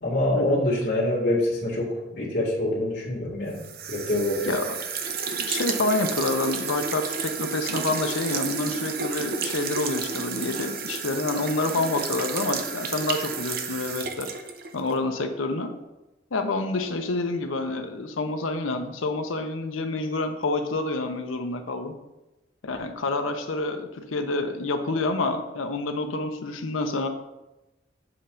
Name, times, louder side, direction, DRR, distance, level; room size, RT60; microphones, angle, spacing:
voice 1, 0.0-3.6 3.9-4.5, left 1 dB, 55° left, -6 dB, 1.8 m, -25 dB
sound 1, 3.6-15.0, right 6 dB, 50° right, 0.5 m, -31 dB
voice 2, 4.4-4.8 5.3-14.3 14.7-15.7 16.3-21.9 22.6-27.1, left 2 dB, 90° left, 6 dB, 0.7 m, -28 dB
7.5 x 2.5 x 5.5 m, 0.99 s
head